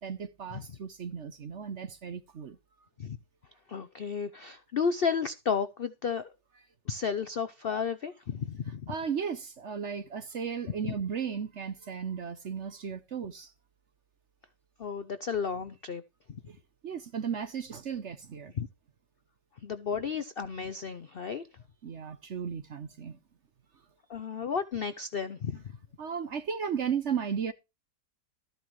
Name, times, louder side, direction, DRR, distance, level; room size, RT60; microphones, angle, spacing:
voice 1, 0.0-2.6 8.9-13.5 16.5-16.6 16.8-18.5 21.8-23.2 26.0-27.5, right 7 dB, 50° right, 1.0 m, -35 dB
voice 2, 3.7-6.3 6.9-8.9 14.8-16.0 18.5-18.7 19.6-21.4 24.1-25.6, left 6 dB, 65° left, 0.5 m, -32 dB
13.5 x 10.0 x 3.2 m
omnidirectional pair, 1.9 m